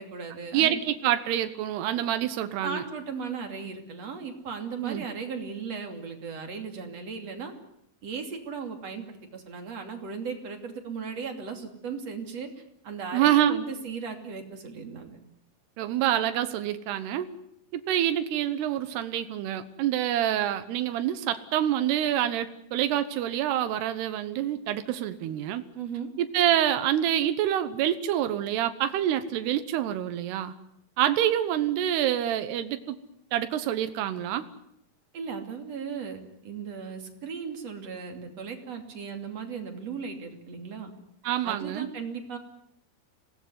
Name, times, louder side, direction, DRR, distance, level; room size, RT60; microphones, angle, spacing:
voice 1, 0.0-0.8 2.6-7.5 8.0-12.5 12.8-15.2 25.8-26.1 35.1-40.9 41.4-42.4, right 5 dB, 45° right, 5 dB, 3.7 m, -36 dB
voice 2, 0.5-2.8 4.8-5.1 13.1-13.7 15.8-17.3 17.7-25.6 26.2-30.5 31.0-33.0 33.3-34.5 41.2-41.9, right 11 dB, 90° right, 10 dB, 3.2 m, -26 dB
26.0 x 19.0 x 9.5 m, 0.72 s
omnidirectional pair, 4.6 m